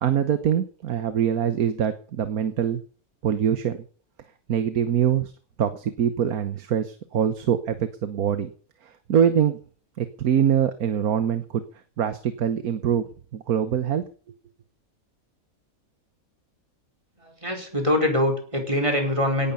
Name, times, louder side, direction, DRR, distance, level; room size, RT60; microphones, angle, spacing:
voice 1, 0.0-2.8 3.2-3.8 4.5-5.3 5.6-8.5 8.8-9.6 10.0-11.6 12.0-13.1 13.3-14.0, right 8 dB, 85° right, 11 dB, 1.5 m, -24 dB
voice 2, 17.2-19.5, left 1 dB, 20° right, 2 dB, 4.6 m, -24 dB
18.0 x 11.5 x 5.6 m, 0.42 s
omnidirectional pair, 1.5 m